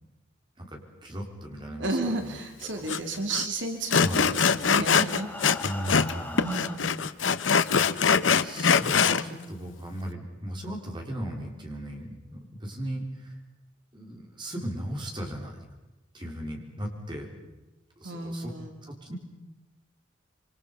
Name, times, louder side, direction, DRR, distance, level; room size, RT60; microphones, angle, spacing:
voice 1, 0.6-2.4 2.8-2.9 4.0-4.3 5.6-6.5 8.3-13.3 13.9-15.6 16.1-17.5 18.0-18.5 18.8-19.2, right 1 dB, 25° right, 1 dB, 4.4 m, -37 dB
voice 2, 1.8-5.7 6.4-7.1 18.0-18.7, right 2 dB, 70° right, 4 dB, 2.4 m, -33 dB
Sawing, 2.9-3.0 3.3-3.5 3.9-6.1 6.4-9.2, left 6 dB, 75° left, 0.8 m, -23 dB
Breathing, 4.2-7.1 7.9-8.0 8.3-8.4 8.9-9.0, left 2 dB, 10° left, 2.9 m, -41 dB
26.5 x 25.5 x 5.5 m, 1.0 s
head